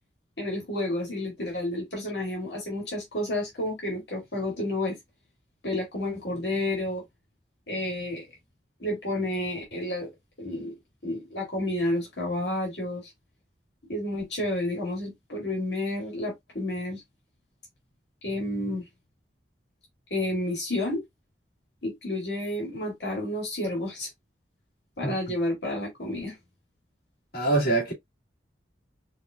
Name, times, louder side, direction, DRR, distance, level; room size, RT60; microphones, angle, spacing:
voice 1, 0.4-5.0 5.6-7.0 7.7-8.3 8.8-10.1 10.4-10.7 11.0-13.1 13.9-17.0 18.2-18.8 20.1-21.0 21.8-24.1 25.0-26.3, left 1 dB, 70° left, 2.1 m, -30 dB
voice 2, 27.3-27.9, right 2 dB, 55° left, 2.3 m, -24 dB
5.7 x 2.6 x 2.4 m
head